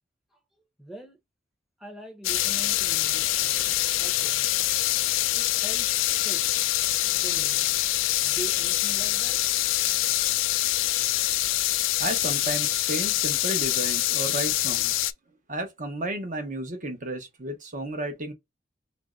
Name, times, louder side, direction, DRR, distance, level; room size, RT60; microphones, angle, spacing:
voice 1, 0.8-1.2 1.8-4.5 5.4-6.0 6.2-6.4 7.0-7.7 8.2-9.5, right 2 dB, ahead, 0.8 m, -43 dB
sound 1, 2.2-15.1, left 15 dB, 85° left, 0.3 m, -25 dB
voice 2, 12.0-15.1 15.5-18.3, right 1 dB, 40° right, 0.9 m, -33 dB
3.1 x 2.6 x 3.6 m
head